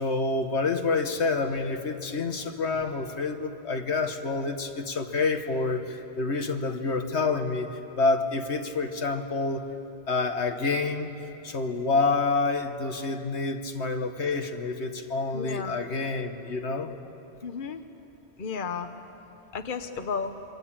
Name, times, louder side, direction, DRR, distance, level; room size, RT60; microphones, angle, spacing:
voice 1, 0.0-7.7 7.9-9.7 10.1-11.1 11.4-16.9, left 3 dB, 75° left, 6 dB, 1.6 m, -28 dB
voice 2, 15.3-15.8 17.4-17.8 18.4-18.9 19.5-20.3, left 5 dB, 50° left, 7 dB, 1.2 m, -33 dB
27.0 x 24.0 x 8.8 m, 3.0 s
omnidirectional pair, 1.1 m